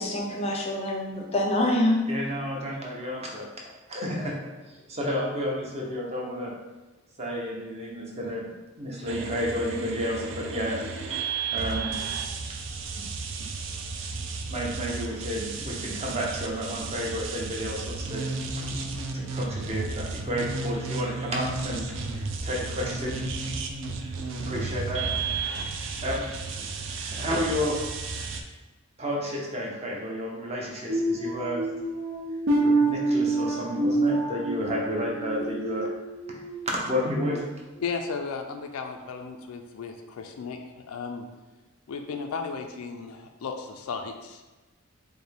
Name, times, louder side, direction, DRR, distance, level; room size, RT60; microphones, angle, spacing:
voice 1, 0.0-2.1, left 1 dB, 30° left, 1 dB, 0.5 m, -25 dB
voice 2, 2.1-3.5 3.9-6.5 7.2-8.4 8.8-10.8 11.2-11.9 13.0-13.1 13.4-13.5 14.5-18.3 19.1-21.9 22.1-23.2 24.0-24.1 24.5-25.1 26.0-26.3 26.6-26.7 27.0-27.9 29.0-31.7 32.6-35.9 36.3-36.4 36.7-37.4, equal, 30° right, -2 dB, 0.7 m, -31 dB
sound 1, 9.1-28.4, right 4 dB, 60° right, 0.4 m, -33 dB
sound 2, 30.9-36.5 37.0-37.3 37.8-38.0, right 2 dB, 75° right, 0.8 m, -27 dB
voice 3, 37.8-41.3 41.9-44.4, left 5 dB, 90° left, 4 dB, 0.4 m, -35 dB
5.0 x 2.2 x 3.4 m, 1.2 s
head